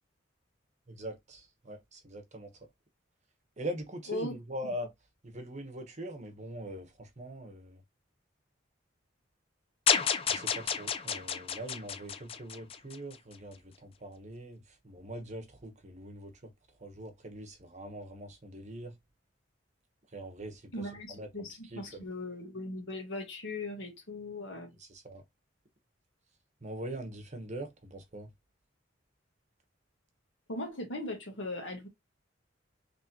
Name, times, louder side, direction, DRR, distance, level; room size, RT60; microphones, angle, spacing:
voice 1, 0.9-2.5 3.6-4.9 5.2-7.8 10.3-16.3 16.8-19.0 20.1-22.0 24.8-25.2 26.6-28.3, right 1 dB, 40° right, 1.0 m, -42 dB
sound 1, 9.9-13.2, left 7 dB, 30° left, 0.4 m, -31 dB
voice 2, 20.7-24.7 30.5-31.9, left 1 dB, 75° left, 1.6 m, -39 dB
3.7 x 3.3 x 2.9 m
head